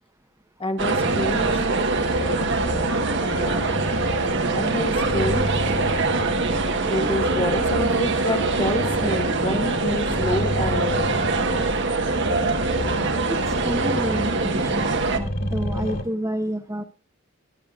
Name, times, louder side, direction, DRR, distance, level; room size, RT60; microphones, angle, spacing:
voice 1, 0.6-1.7 3.2-3.8 4.5-5.5 6.8-11.1, left 1 dB, 25° left, 7 dB, 1.3 m, -28 dB
sound 1, 0.8-16.0, left 1 dB, 50° left, 3.1 m, -30 dB
sound 2, 0.8-15.2, right 3 dB, 60° right, 1.3 m, -24 dB
voice 2, 13.3-16.8, right 1 dB, 15° right, 2 dB, 1.0 m, -29 dB
22.5 x 11.0 x 2.4 m, 0.33 s
head